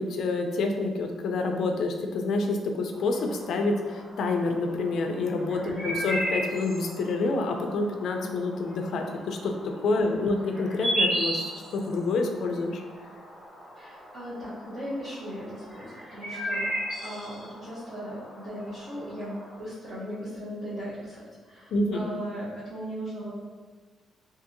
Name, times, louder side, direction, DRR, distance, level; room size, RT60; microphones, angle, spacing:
voice 1, 0.0-12.8 21.7-22.1, left 3 dB, 60° left, 4 dB, 0.3 m, -28 dB
sound 1, 2.9-19.6, equal, 35° right, 1.1 m, -35 dB
voice 2, 5.5-5.9 9.9-10.1 13.7-23.3, equal, 55° right, -11 dB, 0.7 m, -38 dB
2.6 x 2.6 x 2.5 m, 1.4 s
cardioid pair, 155°, 0 cm